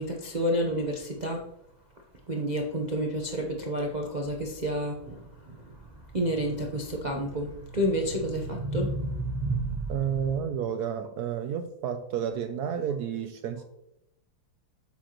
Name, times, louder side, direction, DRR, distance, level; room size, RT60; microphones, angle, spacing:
voice 1, 0.0-1.5 2.3-10.0, right 1 dB, 65° right, 0 dB, 0.4 m, -30 dB
voice 2, 9.9-13.6, right 8 dB, 85° right, 8 dB, 0.8 m, -31 dB
8.9 x 7.4 x 3.0 m, 0.82 s
omnidirectional pair, 2.4 m